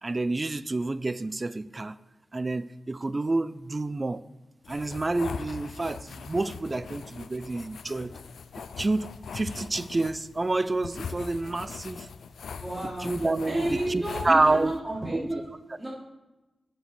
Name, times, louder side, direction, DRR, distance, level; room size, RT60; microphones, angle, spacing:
voice 1, 0.0-2.0 2.3-4.2 4.7-8.1 8.6-12.1 13.0-14.7 15.1-15.2, right 2 dB, 35° right, 15 dB, 0.5 m, -28 dB
sound 1, 4.6-14.8, left 6 dB, 85° left, 0.4 m, -41 dB
voice 2, 12.6-13.2 13.5-15.4 15.8-15.9, right 1 dB, 20° right, -6 dB, 3.0 m, -31 dB
7.8 x 6.4 x 7.0 m, 1.0 s
cardioid pair, 50°, 0 cm